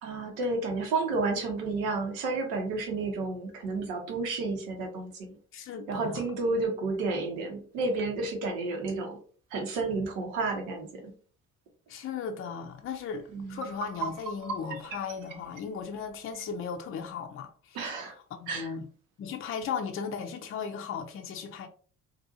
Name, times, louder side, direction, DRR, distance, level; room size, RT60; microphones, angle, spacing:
voice 1, 0.0-5.1 5.9-9.2 9.5-11.1 13.3-13.6 17.7-18.1 18.5-18.7, right 3 dB, 75° right, 0.9 m, -31 dB
voice 2, 5.5-6.2 11.9-17.8 18.4-18.9 19.2-21.7, left 6 dB, 30° left, 0.5 m, -36 dB
sound 1, 13.0-13.1 13.4-16.5, right 5 dB, 50° right, 0.7 m, -39 dB
2.6 x 2.5 x 2.6 m
hypercardioid pair, 50°, 41 cm